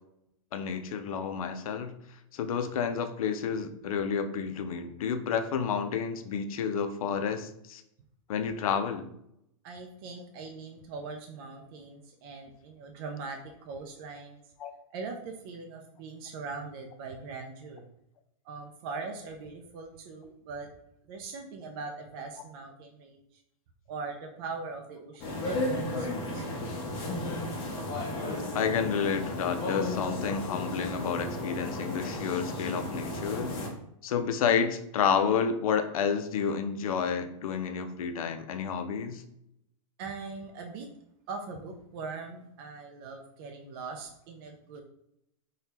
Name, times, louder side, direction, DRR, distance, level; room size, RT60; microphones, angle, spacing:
voice 1, 0.5-1.9 2.3-7.8 8.3-9.1 14.6-14.7 28.5-33.5 34.0-39.2, left 7 dB, 85° left, 8 dB, 0.4 m, -30 dB
voice 2, 9.6-14.4 14.9-17.9 18.4-20.7 21.1-23.3 23.9-26.8 40.0-40.9 41.3-44.8, right 4 dB, 45° right, 2 dB, 0.4 m, -41 dB
sound 1, 25.2-33.7, left 1 dB, 30° left, 0.6 m, -34 dB
2.7 x 2.2 x 3.4 m, 0.77 s
hypercardioid pair, 145°, 18 cm